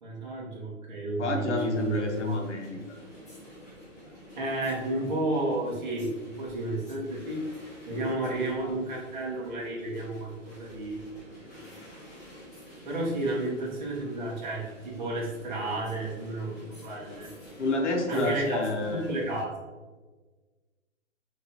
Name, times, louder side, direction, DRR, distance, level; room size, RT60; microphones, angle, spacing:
voice 1, 0.0-2.3 4.4-7.4 7.8-11.0 12.8-17.3 18.1-19.7, right 2 dB, 35° right, -4 dB, 1.2 m, -32 dB
voice 2, 1.2-2.8 7.9-8.3 8.6-8.8 17.6-19.2, left 2 dB, 60° left, 2 dB, 1.0 m, -29 dB
sound 1, 1.5-19.4, equal, 15° left, 0.7 m, -49 dB
5.9 x 2.8 x 2.8 m, 1.3 s
hypercardioid pair, 170°, 39 cm